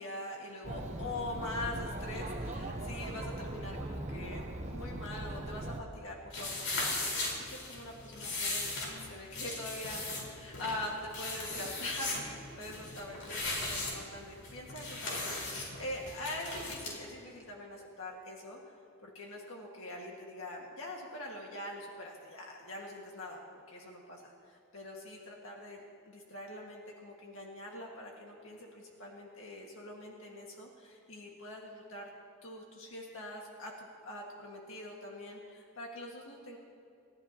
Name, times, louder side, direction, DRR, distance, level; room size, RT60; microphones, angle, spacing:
voice 1, 0.0-10.0 10.3-18.6 19.0-23.4 23.7-25.8 26.1-32.1 32.4-36.6, left 1 dB, 65° left, -1 dB, 1.9 m, -43 dB
Chatter, 0.6-5.8, right 1 dB, 35° right, 1.0 m, -40 dB
sound 1, 6.3-16.9, left 2 dB, 90° left, 4.7 m, -38 dB
29.5 x 14.5 x 3.0 m, 2.5 s
head